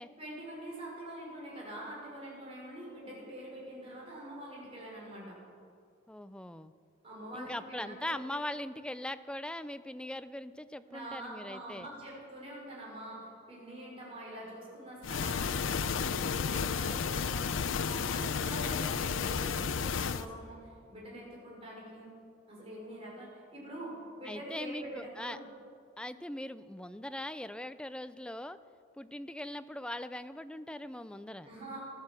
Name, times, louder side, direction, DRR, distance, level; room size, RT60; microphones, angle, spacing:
voice 1, 0.2-5.4 7.0-8.2 10.9-22.1 22.5-25.5 31.4-31.8, right 1 dB, 30° right, -4 dB, 5.1 m, -45 dB
voice 2, 6.1-6.7 7.3-11.9 24.3-25.4 26.0-28.6 29.0-31.5, left 1 dB, 5° left, 12 dB, 0.4 m, -40 dB
sound 1, 15.0-20.3, left 6 dB, 80° left, 0.6 m, -32 dB
16.0 x 11.5 x 7.4 m, 2.3 s
head